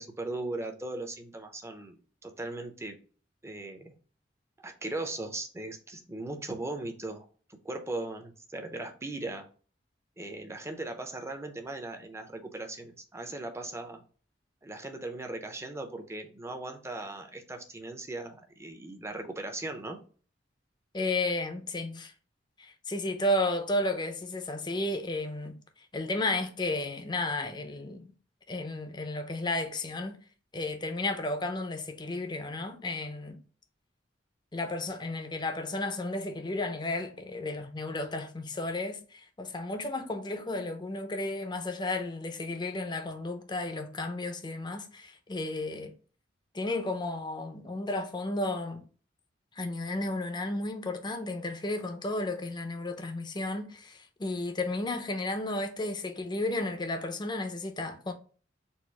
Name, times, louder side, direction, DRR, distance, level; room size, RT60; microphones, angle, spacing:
voice 1, 0.0-3.0 3.4-3.9 4.6-9.5 10.2-14.0 14.6-20.0, right 2 dB, 15° right, 0.7 m, -38 dB
voice 2, 20.9-22.1 22.6-25.6 25.9-28.1 28.5-30.2 30.5-33.4 34.5-45.9 46.5-48.8 49.6-58.1, left 2 dB, 25° left, 0.6 m, -33 dB
4.3 x 2.5 x 4.7 m
head